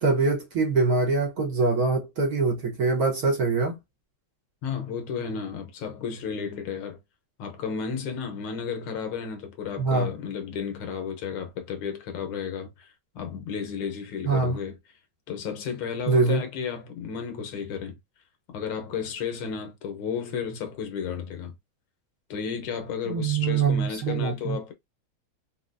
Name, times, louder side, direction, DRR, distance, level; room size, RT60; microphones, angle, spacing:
voice 1, 0.0-3.8 9.8-10.1 14.2-14.6 16.1-16.4 23.1-24.6, right 4 dB, 55° right, 1.3 m, -24 dB
voice 2, 4.6-7.0 7.4-14.8 15.3-18.0 18.5-21.5 22.3-24.7, left 6 dB, 80° left, 1.7 m, -33 dB
4.3 x 2.2 x 2.5 m
omnidirectional pair, 2.3 m